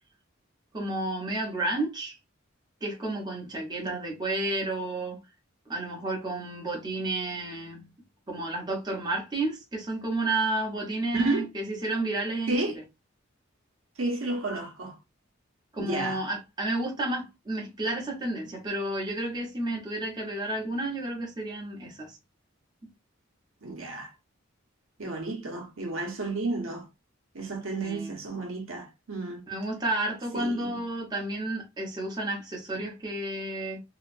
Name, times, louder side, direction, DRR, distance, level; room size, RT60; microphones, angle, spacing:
voice 1, 0.7-2.2 2.8-5.2 5.7-7.9 8.3-12.8 15.7-22.2 27.8-28.1 29.5-33.8, right 2 dB, 20° right, 0.9 m, -31 dB
voice 2, 11.1-11.5 12.5-12.8 14.0-14.9 15.8-16.2 23.6-24.1 25.0-26.9 27.3-29.5 30.3-30.7, right 2 dB, 90° right, 0.9 m, -31 dB
2.8 x 2.2 x 2.4 m
head